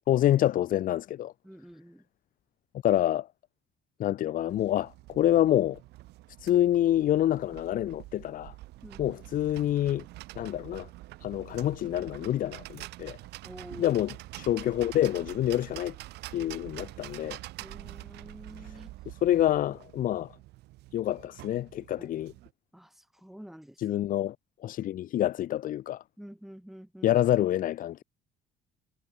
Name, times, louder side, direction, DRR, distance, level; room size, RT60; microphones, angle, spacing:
voice 1, 0.1-1.3 2.8-3.3 4.0-5.8 6.4-8.5 9.0-10.0 10.4-10.9 11.2-13.2 13.8-15.9 16.3-17.4 18.6-18.7 19.1-20.3 20.9-22.3 23.8-24.4 24.6-26.0 27.0-28.0, left 12 dB, 55° left, 0.6 m, -27 dB
voice 2, 1.4-2.0 8.8-9.2 13.4-14.0 17.6-19.0 22.0-22.1 22.7-23.8 26.2-27.1, equal, ahead, 1.7 m, -48 dB
sound 1, 4.5-22.5, right 18 dB, 85° right, 2.1 m, -46 dB
cardioid pair, 110°, 17 cm